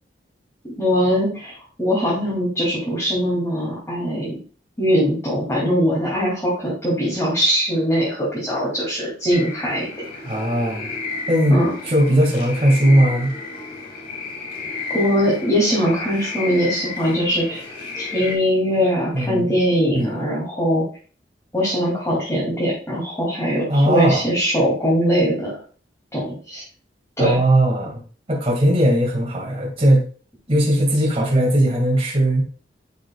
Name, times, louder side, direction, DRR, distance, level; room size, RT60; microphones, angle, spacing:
voice 1, 0.6-4.4 4.8-9.9 11.5-11.7 14.9-17.6 17.9-20.8 21.5-25.6 26.1-26.6 27.2-27.4, equal, 15° left, -7 dB, 2.5 m, -21 dB
sound 1, 9.3-18.4, left 4 dB, 55° left, 2.3 m, -32 dB
voice 2, 10.3-10.9 11.3-13.3 19.1-19.5 19.9-20.3 23.7-24.3 27.2-28.0 28.3-30.1 30.5-32.4, right 1 dB, 35° right, -2 dB, 1.9 m, -18 dB
10.5 x 5.1 x 2.3 m, 0.39 s
head